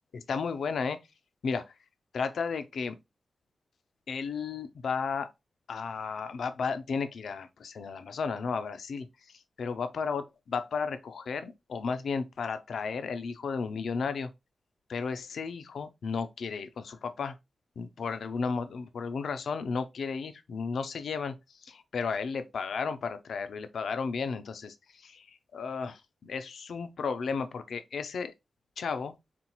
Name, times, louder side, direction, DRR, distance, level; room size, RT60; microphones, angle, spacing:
voice 1, 0.1-1.0 1.4-1.6 2.1-3.0 4.1-5.3 5.7-14.3 14.9-17.4 17.8-21.3 21.6-28.3 28.8-29.1, left 5 dB, 70° left, 0.5 m, -34 dB
4.3 x 3.8 x 2.9 m
wide cardioid pair, 170°, 0 cm